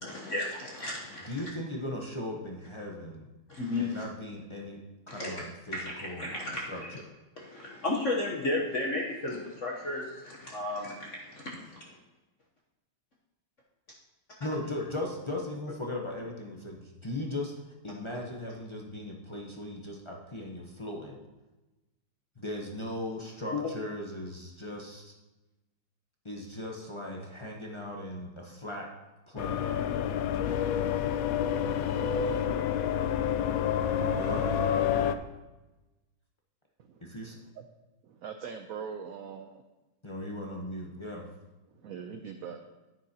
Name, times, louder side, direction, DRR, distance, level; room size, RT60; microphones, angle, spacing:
voice 1, 0.0-1.3 3.5-4.0 5.1-5.3 5.7-6.9 7.4-11.8 23.5-23.6, left 2 dB, 50° left, -2 dB, 1.2 m, -34 dB
voice 2, 1.3-3.3 3.8-6.3 6.7-6.8 14.4-17.5 17.8-21.2 22.4-25.1 26.2-28.9 29.3-29.7 34.2-34.5 37.0-37.4 40.0-41.3, left 1 dB, 30° left, -1 dB, 0.5 m, -38 dB
sound 1, 29.4-35.2, left 8 dB, 80° left, 0.7 m, -28 dB
voice 3, 38.0-39.6 41.8-42.6, right 6 dB, 70° right, 6 dB, 0.8 m, -41 dB
10.0 x 9.4 x 2.8 m, 1.1 s
omnidirectional pair, 2.0 m